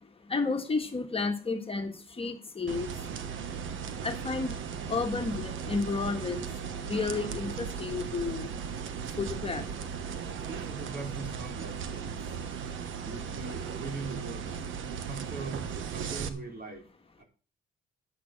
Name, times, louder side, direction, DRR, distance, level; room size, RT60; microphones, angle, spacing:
voice 1, 0.0-3.3 3.8-8.5 9.1-10.2, left 4 dB, 30° left, 5 dB, 1.7 m, -33 dB
sound 1, 2.7-16.3, right 7 dB, 80° right, 1.3 m, -37 dB
voice 2, 10.5-11.8 12.0-12.3 13.0-15.7 15.9-16.8 17.2-17.3, right 3 dB, 50° right, 3 dB, 4.1 m, -41 dB
10.5 x 8.4 x 6.0 m, 0.37 s
cardioid pair, 90°, 20 cm